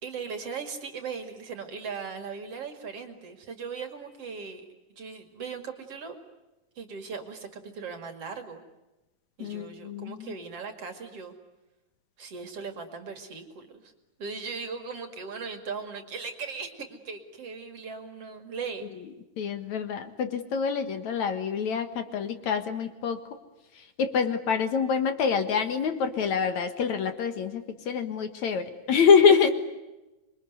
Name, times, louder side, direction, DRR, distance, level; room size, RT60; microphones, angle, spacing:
voice 1, 0.0-4.6 5.0-6.2 6.8-8.6 9.4-11.3 12.2-13.9 14.2-18.9 29.3-29.4, right 5 dB, 50° right, 7 dB, 3.0 m, -38 dB
voice 2, 9.4-10.3 19.4-23.2 23.8-29.5, left 6 dB, 65° left, 8 dB, 2.7 m, -25 dB
27.0 x 23.0 x 9.5 m, 1.0 s
omnidirectional pair, 3.8 m